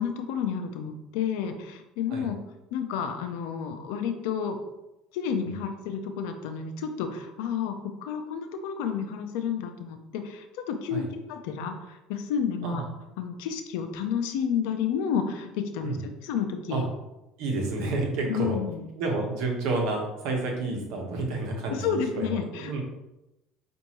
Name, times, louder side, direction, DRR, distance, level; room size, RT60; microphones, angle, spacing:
voice 1, 0.0-2.4 2.7-4.6 5.1-11.0 11.3-12.8 13.2-16.8 18.3-18.8 21.7-22.8, left 7 dB, 75° left, 6 dB, 0.5 m, -31 dB
voice 2, 17.4-18.6 18.9-22.8, right 3 dB, 70° right, 1 dB, 1.1 m, -30 dB
5.3 x 2.6 x 3.0 m, 0.94 s
supercardioid pair, 85°, 0 cm